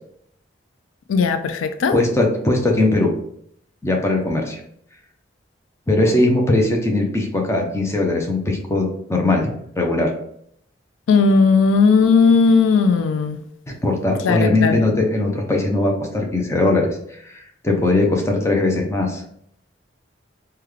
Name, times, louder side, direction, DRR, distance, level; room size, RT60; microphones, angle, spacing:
voice 1, 1.1-1.9 11.1-13.4 14.2-14.8, left 4 dB, 85° left, 9 dB, 0.3 m, -16 dB
voice 2, 1.9-3.1 3.8-4.6 5.9-9.5 9.8-10.1 13.7-16.9 17.2-19.2, left 2 dB, 15° left, 1 dB, 0.5 m, -19 dB
3.6 x 2.2 x 3.2 m, 0.69 s
head